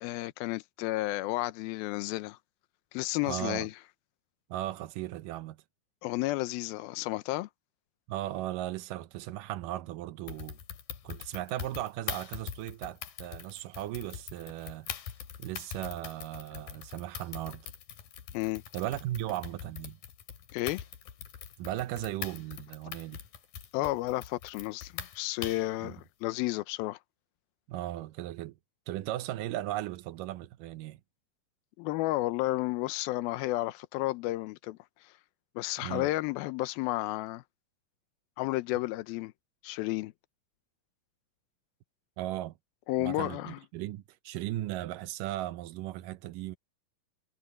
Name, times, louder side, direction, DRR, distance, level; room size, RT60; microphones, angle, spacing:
voice 1, 0.0-2.4 2.9-3.7 6.0-7.5 18.3-18.6 20.5-20.8 23.7-27.0 31.8-35.1 35.6-37.4 38.4-39.3 39.6-40.1 42.9-43.6, left 18 dB, 85° left, 2.6 m, -32 dB
voice 2, 3.3-3.7 4.5-5.6 8.1-10.6 11.0-14.9 15.4-17.7 18.7-20.0 21.6-23.2 25.8-25.9 27.7-28.6 28.9-31.0 35.8-36.1 42.2-42.6 43.0-46.6, right 14 dB, 75° right, 2.2 m, -37 dB
sound 1, 10.3-25.7, left 9 dB, 70° left, 3.7 m, -43 dB
omnidirectional pair, 4.2 m